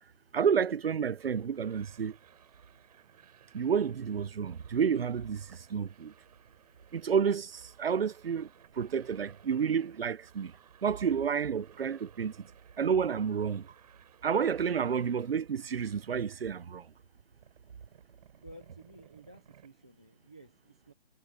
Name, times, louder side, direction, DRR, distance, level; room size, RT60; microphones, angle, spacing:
voice 1, 0.3-2.2 3.5-6.1 6.9-8.5 8.7-10.5 10.8-12.5 12.8-13.7 14.2-16.9, right 7 dB, 55° right, 0.9 m, -30 dB
sound 1, 1.2-16.9 17.2-19.7, right 9 dB, 35° right, 6.3 m, -61 dB
voice 2, 18.4-20.9, equal, 5° right, 0.6 m, -54 dB
hypercardioid pair, 165°, 35 cm